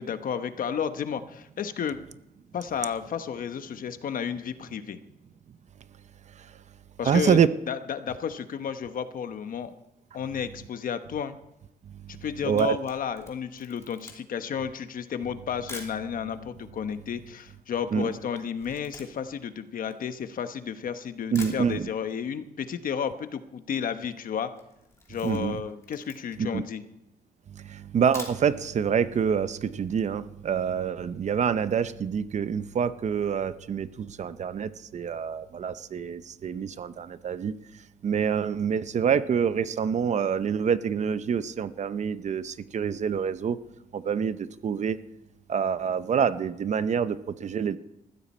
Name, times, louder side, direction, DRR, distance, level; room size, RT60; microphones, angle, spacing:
voice 1, 0.0-2.0 2.5-5.0 7.0-7.4 7.7-9.7 10.1-11.4 12.1-24.5 25.1-26.8, left 7 dB, 60° left, 10 dB, 1.1 m, -32 dB
voice 2, 7.0-7.5 12.4-12.8 17.9-18.1 21.3-21.9 25.2-25.6 26.4-26.6 27.7-37.5 38.0-43.6 43.9-45.0 45.5-47.8, right 7 dB, 45° right, 14 dB, 0.7 m, -26 dB
Camera, 12.4-16.0 16.7-16.8 17.0-20.7 21.0-21.1 21.3-22.2 22.5-22.6 22.9-23.0 23.1-23.6 23.9-24.1 24.5-26.5 27.0-27.1 27.9-28.7 29.1-29.2 29.5-29.6, left 2 dB, 15° left, 3.0 m, -46 dB
20.0 x 15.0 x 4.3 m, 0.86 s
wide cardioid pair, 160°, 16 cm